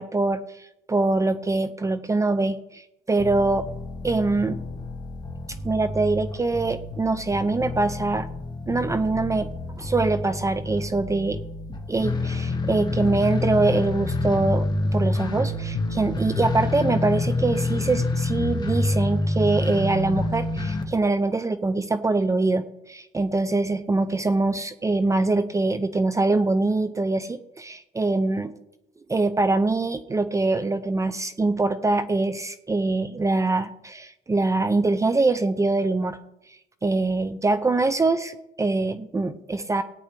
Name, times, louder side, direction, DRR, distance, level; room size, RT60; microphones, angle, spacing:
voice 1, 0.0-3.7 4.0-4.6 5.6-8.3 8.7-9.5 9.8-11.4 11.9-14.7 14.9-28.5 29.1-36.2 36.8-39.8, right 3 dB, 20° right, 12 dB, 0.6 m, -24 dB
sound 1, 3.2-20.8, left 2 dB, 25° left, 1.4 m, -28 dB
18.0 x 9.4 x 3.4 m, 0.86 s
cardioid pair, 110°, 17 cm